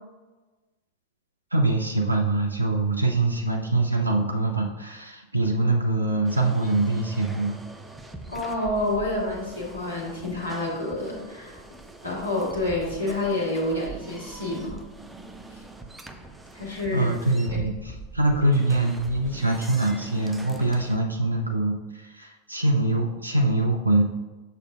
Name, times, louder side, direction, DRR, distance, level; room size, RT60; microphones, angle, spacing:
voice 1, 1.5-7.6 16.9-24.0, right 2 dB, 85° right, 2 dB, 0.6 m, -24 dB
sound 1, 6.2-21.0, right 2 dB, 5° right, 0.6 m, -43 dB
voice 2, 8.3-11.6 12.0-14.7 16.5-17.1 17.5-17.7, left 2 dB, 80° left, -3 dB, 1.9 m, -28 dB
6.7 x 6.3 x 2.5 m, 1.2 s
figure-of-eight pair, 90°, 0 cm